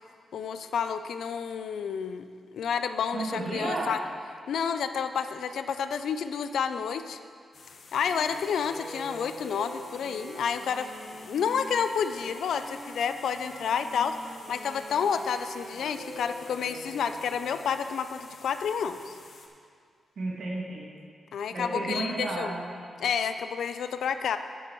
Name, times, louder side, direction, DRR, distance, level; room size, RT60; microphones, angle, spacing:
voice 1, 0.3-2.2 2.5-4.0 4.5-7.2 7.9-19.2 21.3-22.5 23.0-24.4, left 7 dB, 85° left, 9 dB, 0.5 m, -30 dB
voice 2, 3.1-3.9 20.2-20.9 21.5-22.9, right 2 dB, 70° right, -4 dB, 2.1 m, -32 dB
sound 1, 7.5-19.5, left 4 dB, 70° left, 1.0 m, -51 dB
Wind instrument woodwind instrument, 8.0-17.6, equal, 25° right, 2.7 m, -45 dB
12.0 x 9.2 x 3.1 m, 2.1 s
cardioid pair, 105°, 0 cm